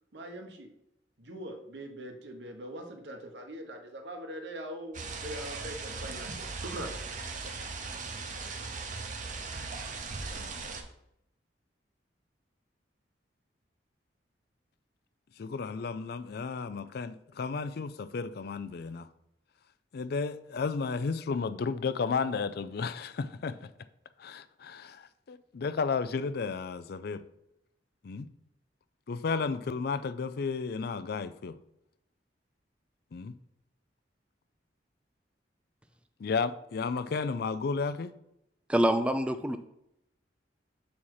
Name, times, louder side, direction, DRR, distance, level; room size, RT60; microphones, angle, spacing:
voice 1, 0.1-0.7 1.2-7.2, right 1 dB, 70° right, 4 dB, 1.1 m, -42 dB
sound 1, 4.9-10.8, right 4 dB, 45° right, 0.8 m, -38 dB
voice 2, 15.4-19.1 19.9-23.7 24.2-27.2 28.0-28.3 29.1-31.6 33.1-33.4 36.2-38.1, left 4 dB, 60° left, 13 dB, 0.4 m, -33 dB
voice 3, 38.7-39.6, right 1 dB, 5° right, 8 dB, 0.3 m, -25 dB
7.2 x 4.2 x 4.8 m, 0.80 s
head